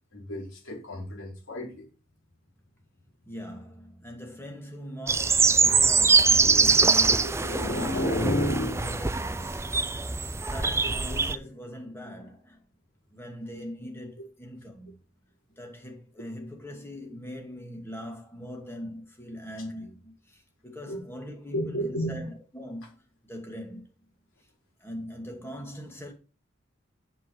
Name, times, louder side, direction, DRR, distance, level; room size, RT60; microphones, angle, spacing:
voice 1, 0.1-1.9 5.6-5.9 6.4-6.8 7.2-9.0 20.9-21.0 21.5-22.2, equal, 75° left, 4.4 m, -31 dB
voice 2, 3.2-8.3 8.8-9.8 10.4-12.6 13.1-15.0 15.6-23.9 24.8-26.1, equal, 10° left, 2.4 m, -41 dB
sound 1, 5.1-11.4, right 4 dB, 15° right, 0.4 m, -23 dB
8.0 x 7.5 x 4.7 m
head